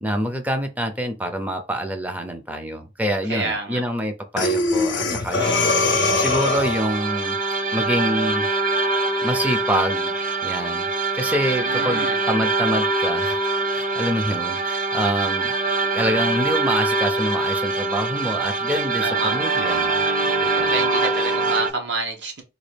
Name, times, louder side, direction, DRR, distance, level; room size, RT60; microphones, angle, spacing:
voice 1, 0.0-7.4 7.7-8.5 9.2-10.1 10.4-10.9 11.1-13.4 13.7-15.5 15.9-20.0 20.4-20.8, equal, 10° right, 0.5 m, -26 dB
voice 2, 3.3-3.8 11.5-12.2 19.0-19.3 19.6-19.8 20.5-22.4, right 3 dB, 70° right, 1.2 m, -28 dB
Breathing, 4.4-6.9, left 3 dB, 75° left, 0.7 m, -22 dB
sound 1, 5.4-21.7, right 3 dB, 50° right, 0.7 m, -23 dB
4.0 x 2.4 x 3.3 m
head